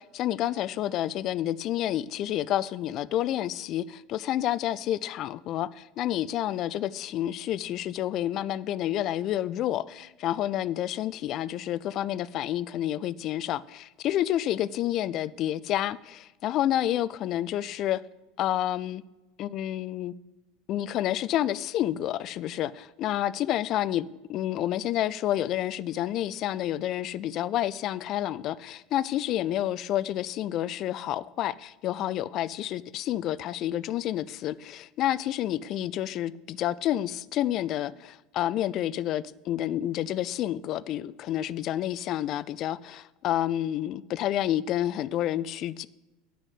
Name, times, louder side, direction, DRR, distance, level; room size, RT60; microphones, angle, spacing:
voice 1, 0.0-18.0 18.4-19.0 19.4-20.1 20.7-45.9, left 12 dB, 50° left, 0.4 m, -29 dB
9.5 x 6.2 x 7.7 m
hypercardioid pair, 80°, 0 cm